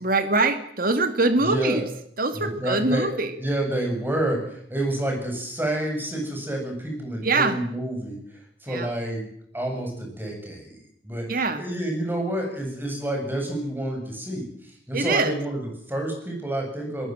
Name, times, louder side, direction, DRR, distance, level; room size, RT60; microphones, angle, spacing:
voice 1, 0.0-1.8 2.2-3.3 7.2-7.6 8.7-8.9 11.3-11.6 14.9-15.4, right 3 dB, 45° right, 9 dB, 2.1 m, -23 dB
voice 2, 1.4-1.9 2.3-3.1 3.4-8.2 8.6-9.2 9.5-17.1, right 1 dB, 10° right, 1 dB, 7.4 m, -29 dB
22.5 x 20.5 x 7.8 m, 0.71 s
head